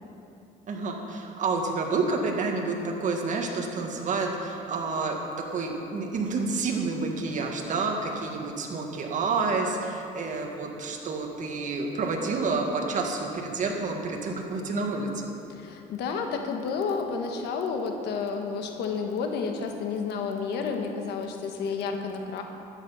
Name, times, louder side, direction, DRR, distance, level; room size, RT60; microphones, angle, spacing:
voice 1, 0.7-15.3, right 3 dB, 50° right, 1 dB, 1.8 m, -29 dB
voice 2, 15.5-22.4, left 5 dB, 80° left, 4 dB, 1.5 m, -31 dB
12.5 x 9.6 x 5.6 m, 2.8 s
cardioid pair, 110°, 17 cm